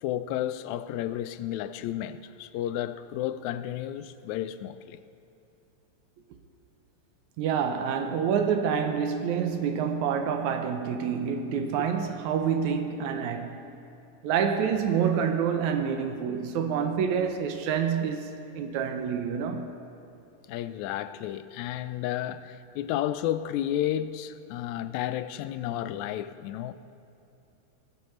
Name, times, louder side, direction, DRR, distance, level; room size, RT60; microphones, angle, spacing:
voice 1, 0.0-5.0 20.5-26.7, left 12 dB, 80° left, 1.8 m, -32 dB
voice 2, 7.4-13.6 14.2-18.3 18.6-19.7, right 7 dB, 80° right, 2.1 m, -27 dB
19.5 x 13.5 x 3.1 m
omnidirectional pair, 3.4 m